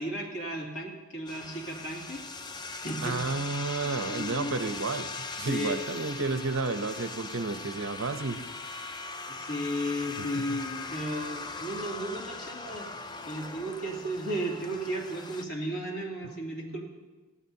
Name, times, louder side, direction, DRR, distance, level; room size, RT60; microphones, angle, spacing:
voice 1, 0.0-2.2 2.5-3.2 3.8-4.6 5.5-5.8 9.3-12.9 13.2-16.8, equal, 75° left, -2 dB, 2.6 m, -34 dB
sound 1, 1.3-15.4, left 3 dB, 20° left, 0.4 m, -40 dB
voice 2, 3.0-5.1 5.4-8.4 10.5-10.6, right 3 dB, 60° right, 9 dB, 0.7 m, -31 dB
19.5 x 12.5 x 2.8 m, 1.2 s
head